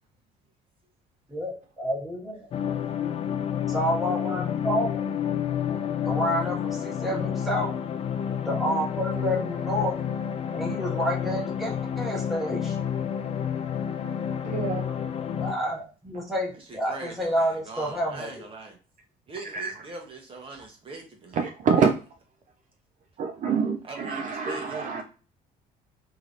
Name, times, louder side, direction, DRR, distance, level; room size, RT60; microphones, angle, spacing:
voice 1, 1.3-2.5 3.7-5.0 6.0-7.7 8.4-10.0 10.5-12.8 15.4-18.5, equal, ahead, 1.3 m, -29 dB
sound 1, 2.5-15.5, left 8 dB, 35° left, 0.4 m, -29 dB
voice 2, 14.4-14.9 19.5-19.7 21.4-21.9 23.2-25.0, right 6 dB, 50° right, 0.5 m, -26 dB
voice 3, 16.5-18.8 19.3-21.4 21.8-21.9 23.8-25.0, right 3 dB, 30° right, 0.8 m, -41 dB
3.3 x 2.8 x 2.4 m
cardioid pair, 110°, 17 cm